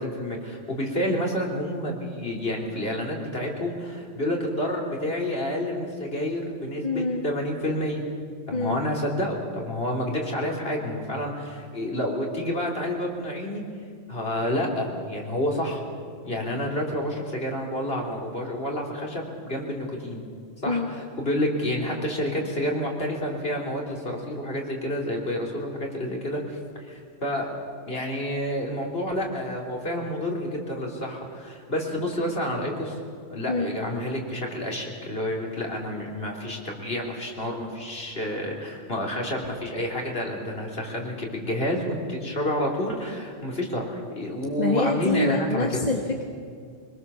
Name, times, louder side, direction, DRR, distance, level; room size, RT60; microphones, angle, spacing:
voice 1, 0.0-8.0 8.5-13.6 14.1-15.8 16.2-20.2 20.6-26.6 26.8-27.6 27.9-33.0 33.3-45.9, left 1 dB, 50° left, 0 dB, 3.7 m, -29 dB
voice 2, 6.8-7.2 8.5-8.8 20.6-20.9 33.5-33.8 44.6-46.2, left 2 dB, 35° left, 1 dB, 1.7 m, -26 dB
23.5 x 21.5 x 7.1 m, 2.2 s
omnidirectional pair, 1.3 m